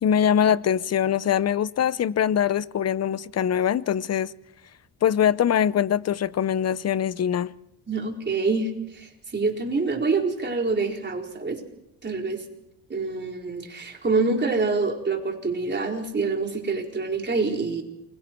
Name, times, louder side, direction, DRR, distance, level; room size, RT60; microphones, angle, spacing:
voice 1, 0.0-4.3 5.0-7.5, left 9 dB, 40° left, 0.8 m, -23 dB
voice 2, 7.9-11.6 12.0-12.4 12.9-17.8, right 3 dB, 25° right, 4.4 m, -26 dB
28.5 x 23.0 x 4.6 m
cardioid pair, 110°, 40 cm